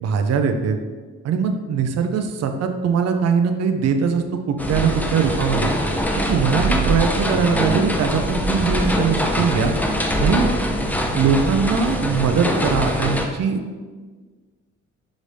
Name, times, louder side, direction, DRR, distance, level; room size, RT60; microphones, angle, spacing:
voice 1, 0.0-0.8 1.2-5.7 6.2-9.7 10.2-10.5 11.1-13.6, right 6 dB, 60° right, 6 dB, 0.5 m, -21 dB
sound 1, 4.6-13.3, equal, 5° left, 0.4 m, -23 dB
5.0 x 2.7 x 3.2 m, 1.4 s
cardioid pair, 90°, 30 cm